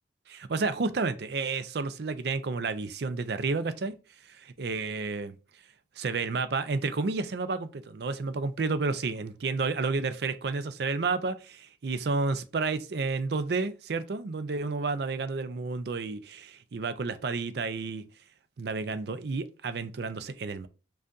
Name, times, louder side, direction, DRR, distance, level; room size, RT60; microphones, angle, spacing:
voice 1, 0.3-3.9 4.2-5.6 6.0-18.0 18.6-20.7, right 4 dB, 60° right, 0.4 m, -31 dB
5.1 x 2.4 x 2.4 m
head